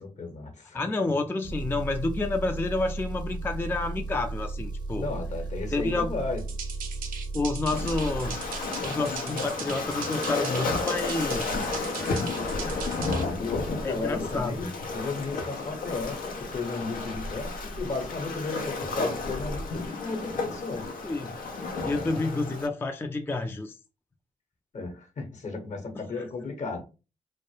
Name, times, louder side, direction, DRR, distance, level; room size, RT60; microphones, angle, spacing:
voice 1, 0.0-0.8 5.0-6.4 13.2-20.8 24.7-26.8, left 3 dB, 55° left, 0.9 m, -34 dB
voice 2, 0.7-5.1 5.7-6.1 7.3-8.5 8.8-12.4 12.6-12.9 13.8-14.8 21.0-21.4 21.6-23.8 25.9-26.2, left 3 dB, 15° left, 0.3 m, -30 dB
Engine, 1.4-8.3, right 3 dB, 35° right, 0.5 m, -35 dB
sound 1, 6.4-13.2, right 6 dB, 85° right, 0.5 m, -40 dB
Waves surf, 7.7-22.7, left 3 dB, 80° left, 0.5 m, -32 dB
2.2 x 2.0 x 3.0 m
supercardioid pair, 50°, 14 cm